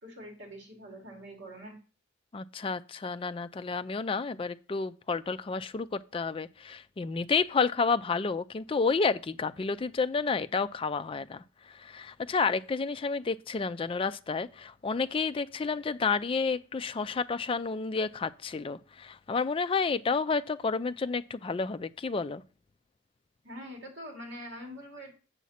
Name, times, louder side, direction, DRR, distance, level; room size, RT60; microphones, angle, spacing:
voice 1, 0.0-1.7 23.4-25.1, equal, 60° right, 2.7 m, -44 dB
voice 2, 2.3-22.4, left 4 dB, 25° left, 0.3 m, -30 dB
7.3 x 7.0 x 4.2 m
head